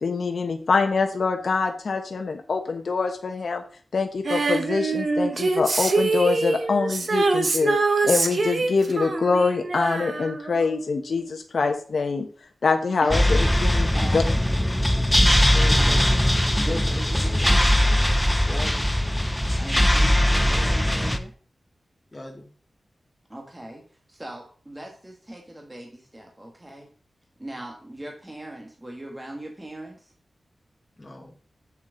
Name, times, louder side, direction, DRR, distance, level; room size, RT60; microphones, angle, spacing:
voice 1, 0.0-3.6 3.9-7.8 8.0-12.3 12.6-14.2, left 4 dB, 65° left, 4 dB, 1.0 m, -24 dB
Female singing, 4.3-10.9 11.2-11.3, right 3 dB, 55° right, 1.2 m, -24 dB
voice 2, 13.0-13.3 13.9-14.4 15.8-16.2 16.6-17.8 19.5-21.3 23.3-23.8 24.1-26.9 27.4-30.1, right 1 dB, 15° right, 1 dB, 1.6 m, -39 dB
sound 1, 13.1-21.2, left 1 dB, 5° left, 0.7 m, -20 dB
voice 3, 15.5-16.1 16.7-17.0 18.5-18.9 22.1-22.5 31.0-31.3, left 2 dB, 25° left, 0 dB, 1.4 m, -36 dB
7.4 x 7.3 x 3.9 m, 0.42 s
wide cardioid pair, 105°, 0 cm